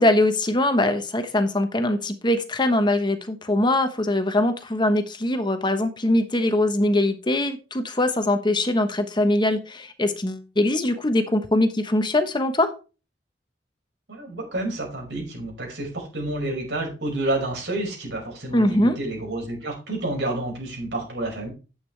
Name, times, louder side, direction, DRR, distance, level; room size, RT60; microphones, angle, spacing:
voice 1, 0.0-12.7 18.5-19.0, left 1 dB, 25° left, 8 dB, 1.0 m, -22 dB
voice 2, 14.1-21.5, right 2 dB, 80° right, 0 dB, 5.4 m, -29 dB
10.5 x 8.3 x 3.3 m, 0.32 s
head